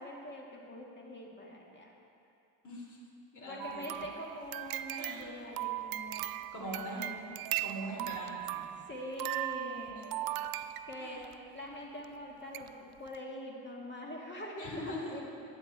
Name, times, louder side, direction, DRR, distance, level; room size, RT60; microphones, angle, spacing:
voice 1, 0.0-1.9 3.4-7.2 8.9-10.1 10.9-11.2 11.5-15.2, left 1 dB, 25° left, -1 dB, 2.1 m, -44 dB
voice 2, 2.6-3.0 3.3-4.0 4.9-5.3 6.5-7.1 7.6-8.7 11.0-11.3 14.6-15.2, equal, 45° left, -2 dB, 2.8 m, -42 dB
sound 1, 3.6-11.4 12.0-12.1 12.5-12.7 13.1-13.2, right 14 dB, 60° right, 0.5 m, -39 dB
10.5 x 9.7 x 4.3 m, 2.6 s
supercardioid pair, 75°, 40 cm